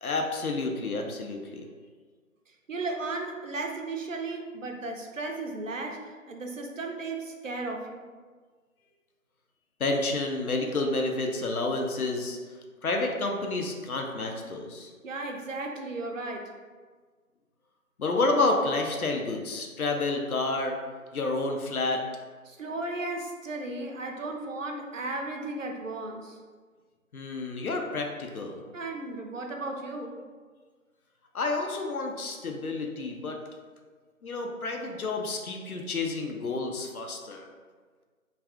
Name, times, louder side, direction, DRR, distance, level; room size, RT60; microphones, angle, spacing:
voice 1, 0.0-1.7 9.8-12.4 12.8-14.9 18.0-20.8 21.1-22.0 27.1-28.6 31.3-33.4 34.2-37.5, left 2 dB, 85° left, 2 dB, 0.6 m, -29 dB
voice 2, 2.5-8.0 15.0-16.5 22.5-26.4 28.7-30.1, right 2 dB, 65° right, 2 dB, 0.5 m, -35 dB
2.4 x 2.4 x 3.4 m, 1.5 s
figure-of-eight pair, 170°, 42 cm